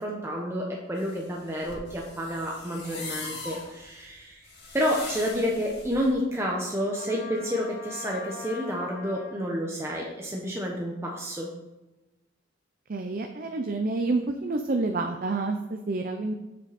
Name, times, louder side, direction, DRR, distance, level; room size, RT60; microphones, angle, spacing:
voice 1, 0.0-4.4 4.7-11.5, equal, 15° right, -2 dB, 0.9 m, -30 dB
sound 1, 1.0-6.1, left 3 dB, 60° left, 2.7 m, -41 dB
Trumpet, 6.9-9.5, left 5 dB, 30° left, 1.5 m, -42 dB
voice 2, 12.9-16.3, right 3 dB, 45° right, 6 dB, 0.5 m, -28 dB
8.0 x 6.8 x 4.2 m, 1.0 s
head